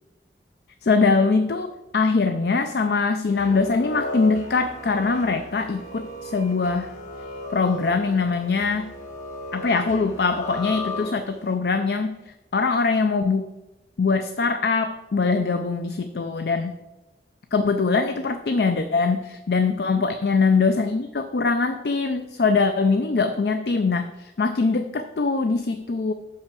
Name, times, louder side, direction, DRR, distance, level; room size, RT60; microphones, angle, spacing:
voice 1, 0.8-6.9 7.5-8.9 9.5-12.2 12.5-13.4 14.0-16.7 17.5-26.1, left 4 dB, 65° left, 8 dB, 0.5 m, -22 dB
sound 1, 3.3-11.5, left 1 dB, 45° left, 1.6 m, -35 dB
5.7 x 5.7 x 6.8 m, 1.0 s
head